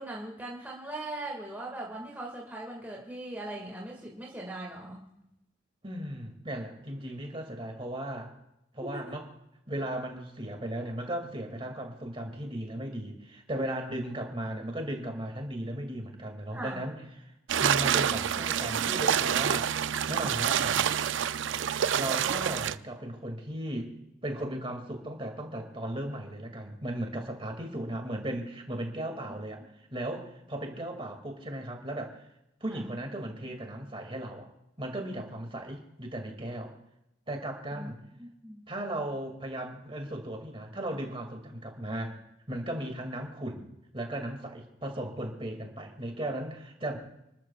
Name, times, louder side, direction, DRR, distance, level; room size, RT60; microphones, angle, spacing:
voice 1, 0.0-5.0 8.8-9.0 14.0-14.1 16.5-16.8 32.7-32.8 37.7-37.9 38.2-38.6, right 2 dB, 10° right, -2 dB, 1.9 m, -40 dB
voice 2, 5.8-8.3 8.7-9.3 9.7-17.3 17.6-19.7 20.1-20.9 22.0-24.0 24.2-29.6 29.9-32.2 32.6-34.5 34.8-36.7 37.3-38.0 38.7-42.2 42.5-43.7 43.9-47.0, right 1 dB, 25° right, 4 dB, 2.3 m, -36 dB
sound 1, 17.5-22.8, right 8 dB, 65° right, 0.4 m, -27 dB
29.5 x 13.5 x 2.4 m, 0.87 s
head